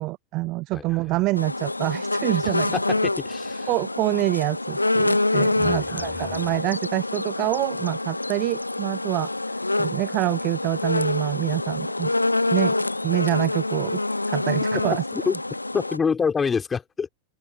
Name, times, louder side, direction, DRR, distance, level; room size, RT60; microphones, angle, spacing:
voice 1, 0.0-2.7 3.7-9.3 9.8-12.1 12.5-12.8 13.0-14.0 14.3-15.0, right 20 dB, 40° right, 0.5 m, -26 dB
voice 2, 0.7-1.1 2.4-3.7 5.6-6.5 15.1-15.3 15.7-17.1, left 5 dB, 15° left, 3.2 m, -27 dB
sound 1, 1.4-16.0, left 2 dB, 85° left, 0.8 m, -26 dB
figure-of-eight pair, 90°, 0 cm